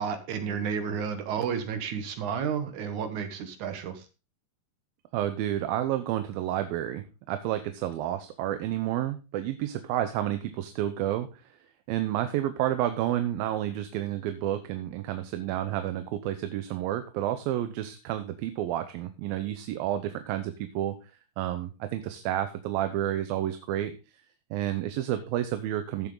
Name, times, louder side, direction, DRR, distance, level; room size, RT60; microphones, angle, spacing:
voice 1, 0.0-4.0, right 7 dB, 65° right, 8 dB, 2.5 m, -31 dB
voice 2, 5.1-11.5 11.9-21.0 21.4-23.9 24.5-26.1, right 12 dB, 90° right, 9 dB, 2.7 m, -30 dB
15.5 x 7.3 x 3.9 m, 0.32 s
omnidirectional pair, 4.1 m